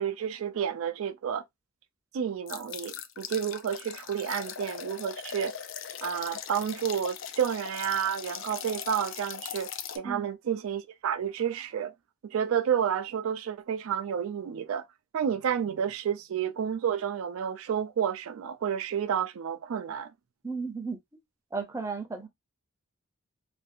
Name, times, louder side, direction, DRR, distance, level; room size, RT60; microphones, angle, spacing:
voice 1, 0.0-1.4 2.1-5.5 6.0-9.7 9.9-11.9 12.2-14.8 15.1-20.1, right 8 dB, 80° right, 0.3 m, -30 dB
sound 1, 2.5-10.0, left 8 dB, 65° left, 0.4 m, -40 dB
voice 2, 20.4-21.0 21.5-22.3, right 4 dB, 15° right, 0.5 m, -34 dB
2.6 x 2.3 x 2.5 m
head